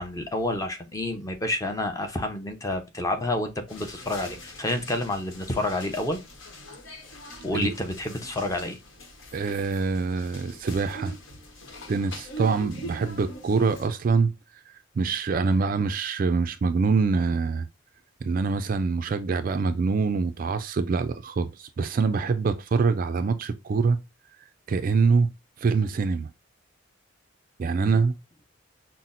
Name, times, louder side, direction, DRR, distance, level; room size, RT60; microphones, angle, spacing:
voice 1, 0.0-6.2 7.4-8.8 27.8-28.0, left 1 dB, 15° left, 0.6 m, -29 dB
sound 1, 3.7-13.9, right 1 dB, 70° left, 1.1 m, -43 dB
voice 2, 9.3-11.1 11.9-14.3 15.0-17.7 18.2-24.0 24.7-25.3 25.6-26.3 27.6-28.1, right 4 dB, 45° right, 0.3 m, -24 dB
5.7 x 2.1 x 2.4 m
head